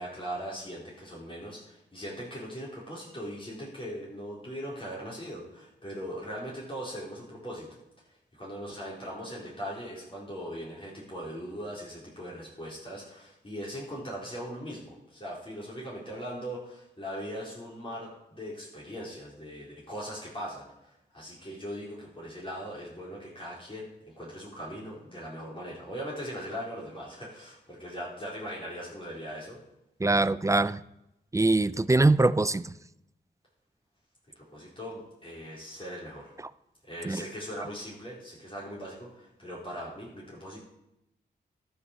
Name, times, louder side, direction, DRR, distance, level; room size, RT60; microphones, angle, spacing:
voice 1, 0.0-7.7 8.3-23.9 24.1-29.6 34.4-36.3 36.8-40.6, equal, 30° left, -6 dB, 4.2 m, -40 dB
voice 2, 30.0-30.8 31.3-32.7 37.0-37.2, right 2 dB, 15° right, 17 dB, 0.4 m, -23 dB
12.5 x 5.6 x 6.6 m, 0.86 s
cardioid pair, 45°, 19 cm